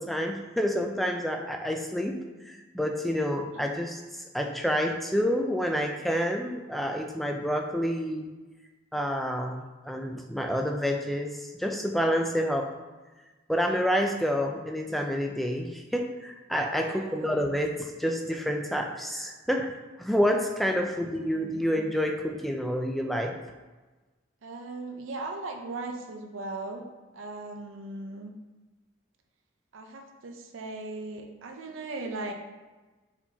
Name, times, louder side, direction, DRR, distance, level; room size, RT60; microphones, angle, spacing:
voice 1, 0.0-2.2 2.5-8.3 8.9-12.8 13.5-23.3, equal, ahead, 3 dB, 0.3 m, -28 dB
voice 2, 16.8-17.5 20.9-21.8 24.4-26.9 27.1-28.3 29.7-32.3, right 2 dB, 85° right, 3 dB, 0.5 m, -38 dB
4.3 x 4.3 x 2.8 m, 1.2 s
head